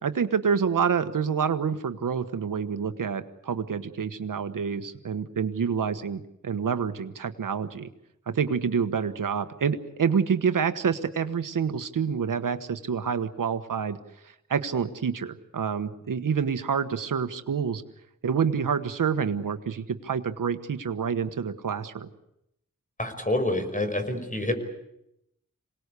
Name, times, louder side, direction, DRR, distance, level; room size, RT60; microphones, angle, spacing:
voice 1, 0.0-7.9 8.3-14.0 14.2-17.8 18.2-22.1, right 6 dB, 80° right, 10 dB, 1.3 m, -27 dB
voice 2, 23.0-24.5, left 1 dB, 25° left, 7 dB, 5.4 m, -27 dB
27.0 x 19.0 x 8.3 m, 0.82 s
cardioid pair, 65°, 32 cm